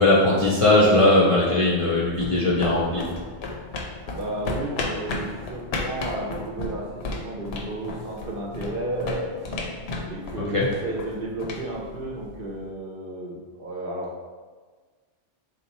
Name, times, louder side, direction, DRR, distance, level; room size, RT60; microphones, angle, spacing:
voice 1, 0.0-3.1 10.5-10.7, left 2 dB, 45° left, -6 dB, 0.4 m, -19 dB
sound 1, 1.8-12.5, left 2 dB, 70° left, 0.8 m, -34 dB
voice 2, 4.2-6.9 7.1-9.6 10.0-14.3, right 1 dB, 60° right, -2 dB, 0.8 m, -32 dB
3.5 x 2.8 x 4.1 m, 1.5 s
omnidirectional pair, 1.1 m